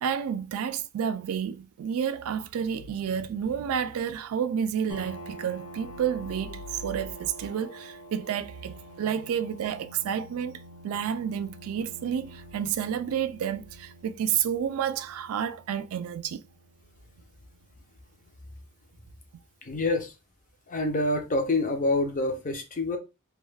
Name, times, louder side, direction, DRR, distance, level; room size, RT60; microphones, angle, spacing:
voice 1, 0.0-10.6 10.8-16.4, right 8 dB, 85° right, 0.3 m, -30 dB
sound 1, 4.9-18.2, right 1 dB, 85° left, 0.6 m, -47 dB
voice 2, 19.6-20.1 20.7-23.0, left 2 dB, 40° left, 0.5 m, -27 dB
2.3 x 2.3 x 3.1 m
head